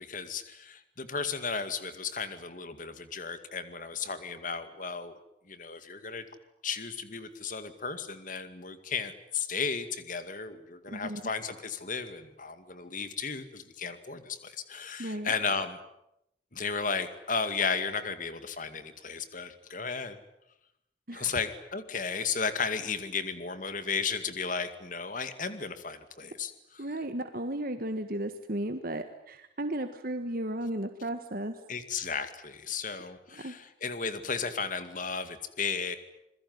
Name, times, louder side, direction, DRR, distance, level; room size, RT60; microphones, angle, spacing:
voice 1, 0.0-5.2 5.5-6.2 6.6-15.8 16.5-20.2 21.1-26.8 31.7-36.0, left 5 dB, 45° left, 10 dB, 2.2 m, -34 dB
voice 2, 10.9-11.2 15.0-15.3 21.1-21.3 26.8-31.6 33.3-33.5, right 1 dB, 50° right, 8 dB, 1.6 m, -34 dB
27.5 x 21.5 x 9.6 m, 0.83 s
head